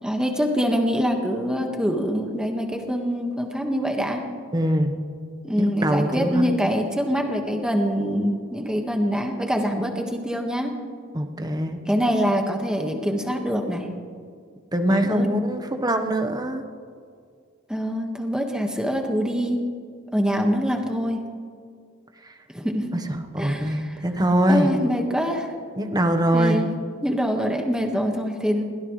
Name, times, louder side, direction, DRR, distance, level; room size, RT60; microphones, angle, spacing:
voice 1, 0.0-4.2 5.4-10.7 11.9-13.9 14.9-15.3 17.7-19.6 20.1-21.2 22.5-22.8 23.4-23.8 24.5-25.5 26.3-26.7 27.0-28.6, equal, 5° right, 2 dB, 1.7 m, -24 dB
voice 2, 4.5-5.0 5.6-6.5 11.1-11.8 14.7-16.6 22.2-22.3 22.9-23.0 23.3-24.7 25.8-26.6, right 1 dB, 20° right, 6 dB, 1.2 m, -23 dB
22.0 x 16.5 x 3.3 m, 2.1 s
head